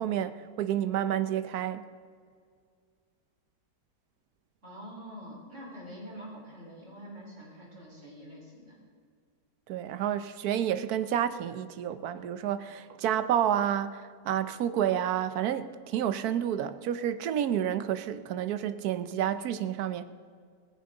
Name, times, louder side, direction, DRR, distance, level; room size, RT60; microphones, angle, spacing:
voice 1, 0.0-1.9 9.7-20.0, right 10 dB, 65° right, 12 dB, 1.2 m, -30 dB
voice 2, 4.6-8.8, equal, 45° right, -3 dB, 4.6 m, -45 dB
17.5 x 15.0 x 3.8 m, 2.1 s
omnidirectional pair, 1.8 m